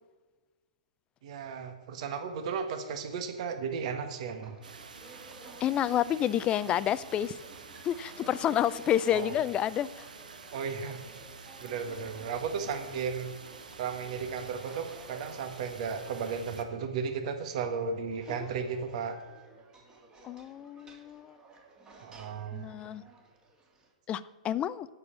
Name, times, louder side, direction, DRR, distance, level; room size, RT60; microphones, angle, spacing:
voice 1, 1.2-4.6 9.1-9.3 10.5-11.0 11.4-13.3 13.8-19.2 22.0-22.7, right 6 dB, 55° right, 7 dB, 1.5 m, -35 dB
sound 1, 4.3-23.9, right 2 dB, 20° right, 2.1 m, -53 dB
sound 2, 4.6-16.6, right 4 dB, 85° right, 1.2 m, -49 dB
voice 2, 5.6-7.4 7.8-10.0 18.3-18.4 20.2-21.4 22.5-23.0 24.1-24.9, left 11 dB, 25° left, 17 dB, 0.4 m, -29 dB
8.5 x 7.2 x 8.7 m, 1.3 s
hypercardioid pair, 120°, 4 cm